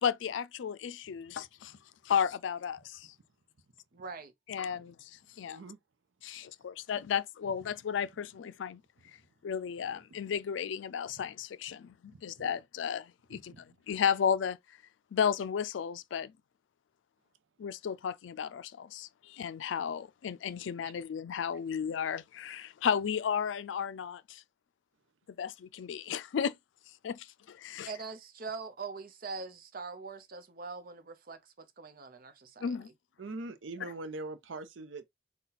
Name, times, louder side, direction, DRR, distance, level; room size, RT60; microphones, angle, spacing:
voice 1, 0.0-1.8 2.0-3.1 4.5-5.6 6.2-8.8 9.4-14.6 15.1-16.3 17.6-24.4 25.4-26.5 27.0-27.9 32.6-32.9, left 7 dB, 80° left, 0.4 m, -33 dB
voice 2, 3.9-4.3 27.9-32.8, right 4 dB, 50° right, 0.7 m, -43 dB
voice 3, 5.4-5.8 10.1-10.2 12.1-12.5 13.3-13.6 20.8-20.9 33.2-35.0, right 2 dB, 85° right, 0.6 m, -43 dB
4.1 x 2.2 x 4.0 m
head